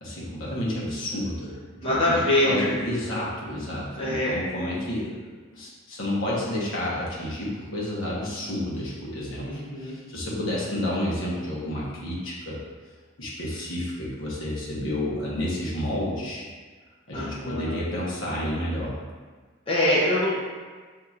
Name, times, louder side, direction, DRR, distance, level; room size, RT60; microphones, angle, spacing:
voice 1, 0.0-1.5 1.8-5.2 5.5-12.6 13.2-16.4 17.1-19.0, left 1 dB, 65° left, -6 dB, 1.0 m, -30 dB
voice 2, 1.8-2.7 3.9-4.4 9.4-10.0 17.1-17.8 19.7-20.4, left 1 dB, 25° left, -7 dB, 0.6 m, -24 dB
5.6 x 2.8 x 2.4 m, 1.5 s
head